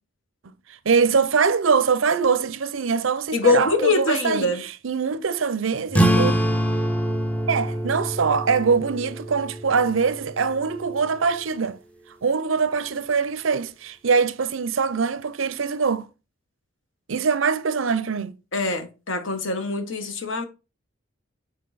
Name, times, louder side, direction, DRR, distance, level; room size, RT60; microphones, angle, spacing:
voice 1, 0.7-4.5 4.8-6.3 7.5-11.8 12.2-16.1 17.1-18.3, right 5 dB, 75° right, 0.6 m, -23 dB
voice 2, 3.3-4.6 18.5-20.4, left 3 dB, 70° left, 1.2 m, -23 dB
sound 1, 5.9-11.0, equal, 5° left, 0.6 m, -25 dB
7.6 x 4.5 x 4.0 m
head